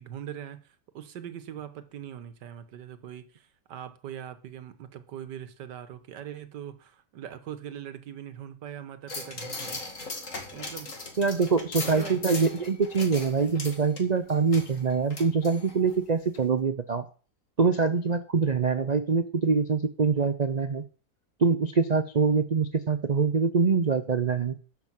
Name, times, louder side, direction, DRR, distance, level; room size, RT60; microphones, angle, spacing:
voice 1, 0.0-9.8 10.5-10.9 11.8-12.4, right 10 dB, 90° right, 1.7 m, -41 dB
sound 1, 9.1-16.0 16.3-16.4, left 3 dB, 50° left, 2.6 m, -39 dB
voice 2, 11.2-17.0 17.6-20.8 21.4-24.6, right 5 dB, 65° right, 0.4 m, -24 dB
12.0 x 5.9 x 7.4 m
omnidirectional pair, 1.8 m